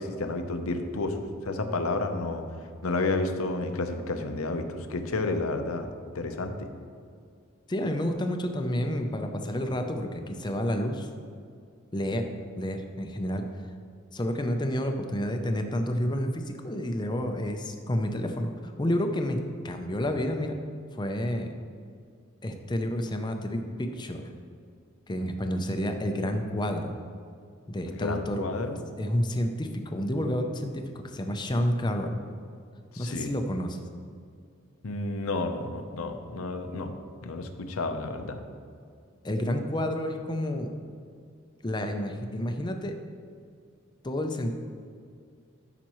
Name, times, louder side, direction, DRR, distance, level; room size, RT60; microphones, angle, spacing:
voice 1, 0.0-2.4 2.8-5.9 6.1-6.7 27.9-28.8 32.9-33.3 34.8-36.9 37.2-38.4, left 2 dB, 80° left, 6 dB, 0.8 m, -31 dB
voice 2, 7.7-11.1 11.9-12.3 12.6-13.4 14.1-20.6 20.9-21.6 22.4-24.3 25.1-26.9 27.7-28.4 29.0-32.2 33.0-33.8 39.2-40.7 41.6-43.0 44.0-44.5, equal, 20° left, 5 dB, 0.5 m, -30 dB
13.0 x 5.9 x 3.1 m, 2.2 s
head